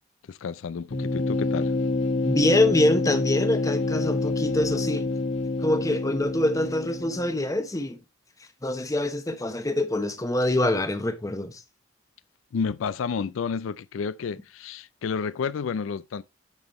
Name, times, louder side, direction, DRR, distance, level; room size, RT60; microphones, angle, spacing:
voice 1, 0.3-1.7 12.5-16.2, left 6 dB, 90° left, 0.4 m, -30 dB
sound 1, 0.9-7.5, left 2 dB, 70° left, 1.2 m, -27 dB
voice 2, 2.2-5.1 5.6-8.0 8.6-11.6, left 1 dB, 15° left, 0.8 m, -25 dB
8.9 x 6.1 x 3.1 m
head